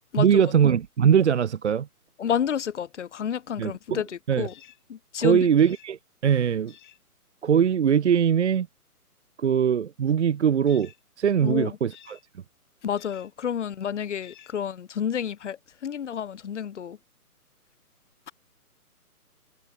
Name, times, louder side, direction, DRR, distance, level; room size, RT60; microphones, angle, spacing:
voice 1, 0.2-1.9 3.6-4.0 4.3-4.5 5.2-6.7 7.4-8.7 9.4-10.9 11.2-12.2, right 8 dB, 50° right, 0.7 m, -21 dB
voice 2, 2.2-4.5 4.9-5.5 11.4-11.8 12.8-17.0, left 8 dB, 50° left, 1.5 m, -30 dB
sound 1, 4.5-4.8 5.6-5.9 6.7-7.0 10.7-11.0 11.9-12.3 13.0-13.3 14.2-14.6, left 11 dB, 30° left, 1.8 m, -52 dB
hypercardioid pair, 155°, 46 cm